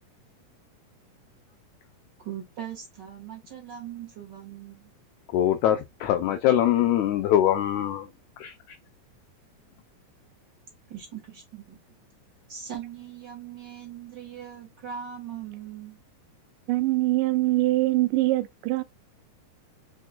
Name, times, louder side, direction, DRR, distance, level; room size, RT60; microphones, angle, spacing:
voice 1, 2.2-4.9 10.9-11.8 12.5-16.0, right 9 dB, 45° right, 1.6 m, -40 dB
voice 2, 5.3-8.1 8.4-8.5, left 11 dB, 85° left, 1.7 m, -23 dB
voice 3, 16.7-18.8, right 18 dB, 80° right, 2.1 m, -23 dB
4.7 x 4.4 x 2.3 m
omnidirectional pair, 3.9 m